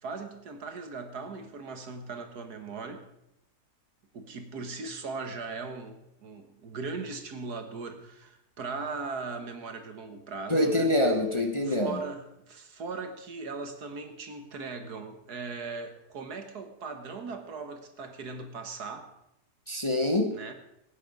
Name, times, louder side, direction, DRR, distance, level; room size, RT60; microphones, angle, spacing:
voice 1, 0.0-3.0 4.1-10.9 11.7-19.1 20.3-20.5, right 4 dB, 75° right, 6 dB, 2.0 m, -39 dB
voice 2, 10.5-12.0 19.7-20.3, left 1 dB, 20° left, 4 dB, 1.0 m, -25 dB
17.0 x 9.2 x 5.3 m, 0.84 s
omnidirectional pair, 1.7 m